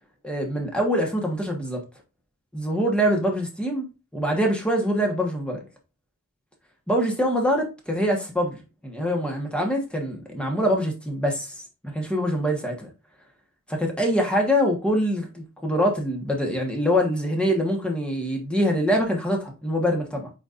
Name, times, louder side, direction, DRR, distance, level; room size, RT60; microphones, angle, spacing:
voice 1, 0.2-1.8 2.5-3.9 4.1-5.6 6.9-11.5 11.8-12.9 13.7-20.3, equal, 5° left, 1.3 m, -24 dB
8.8 x 4.2 x 2.5 m
head